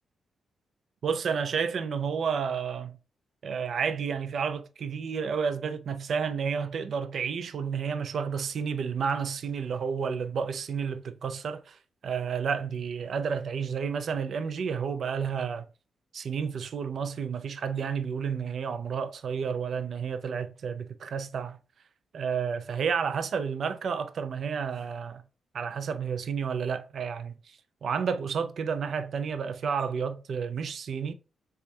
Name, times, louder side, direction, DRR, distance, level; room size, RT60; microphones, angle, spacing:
voice 1, 1.0-2.9 3.4-15.7 16.1-21.6 22.1-25.2 25.5-31.1, right 6 dB, 65° right, 0.4 m, -31 dB
3.4 x 3.3 x 2.6 m
cardioid pair, 80°, 0 cm